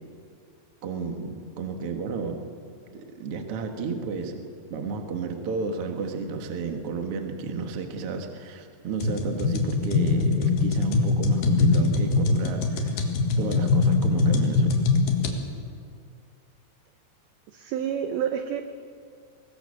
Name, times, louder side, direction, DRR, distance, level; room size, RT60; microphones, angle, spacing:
voice 1, 0.8-2.4 2.9-4.4 4.7-13.0 13.4-14.8, right 4 dB, 65° right, 5 dB, 1.4 m, -32 dB
sound 1, 9.0-15.3, left 3 dB, 60° left, 2.7 m, -22 dB
voice 2, 17.5-18.6, right 9 dB, 80° right, 8 dB, 2.2 m, -28 dB
23.0 x 19.0 x 6.7 m, 2.4 s
omnidirectional pair, 5.4 m